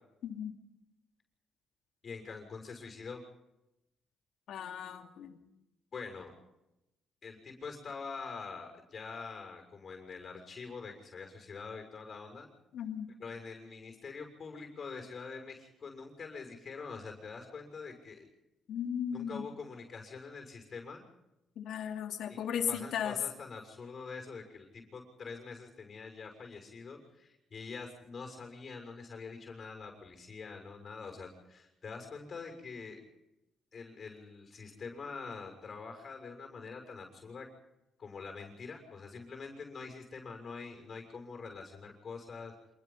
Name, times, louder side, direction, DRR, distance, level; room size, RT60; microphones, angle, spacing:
voice 1, 0.2-0.5 4.5-5.4 12.7-13.1 18.7-19.5 21.6-23.2, left 8 dB, 75° left, 4 dB, 2.7 m, -36 dB
voice 2, 2.0-3.2 5.9-6.3 7.2-12.5 13.2-18.3 19.1-21.0 22.3-22.4 22.7-33.0 33.7-37.5 38.0-42.5, left 4 dB, 45° left, 4 dB, 6.6 m, -45 dB
27.0 x 20.5 x 5.7 m, 0.91 s
cardioid pair, 90°, 0 cm